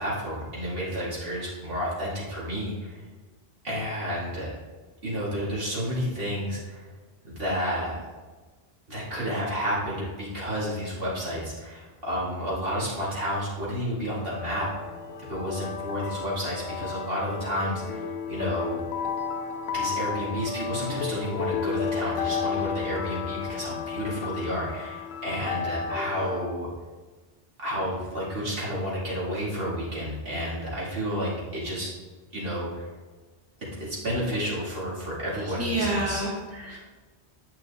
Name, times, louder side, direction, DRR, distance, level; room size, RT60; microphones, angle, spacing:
voice 1, 0.0-3.0 3.6-4.5 5.0-6.9 7.2-8.0 8.9-14.7 15.3-18.8 19.7-26.7 27.6-31.9 32.3-32.9 33.6-36.3, equal, 70° right, -7 dB, 2.6 m, -31 dB
sound 1, 14.2-26.5, left 6 dB, 80° left, 0.8 m, -32 dB
voice 2, 35.4-36.8, right 1 dB, 15° right, -5 dB, 1.9 m, -29 dB
9.2 x 5.9 x 3.5 m, 1.3 s
omnidirectional pair, 1.0 m